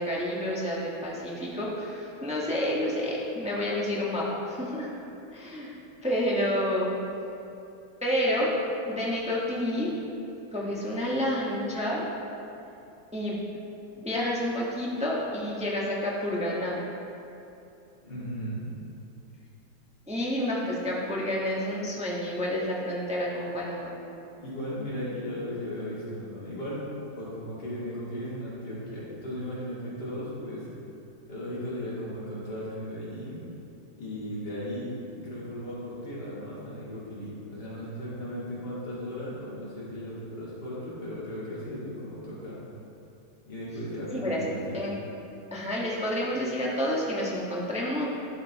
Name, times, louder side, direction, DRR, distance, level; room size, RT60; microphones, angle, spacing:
voice 1, 0.0-4.9 5.3-5.7 6.0-7.0 8.0-8.5 8.9-9.9 10.5-12.0 13.1-13.4 13.9-16.8 20.1-24.0 44.1-44.4 44.7-44.9 45.5-48.1, left 1 dB, 5° right, -5 dB, 0.9 m, -29 dB
voice 2, 18.0-18.7 24.4-26.8 27.1-30.7 31.3-33.4 34.0-42.6 43.5-44.8, equal, 55° left, -9 dB, 2.8 m, -36 dB
12.0 x 5.4 x 4.0 m, 2.8 s
omnidirectional pair, 2.1 m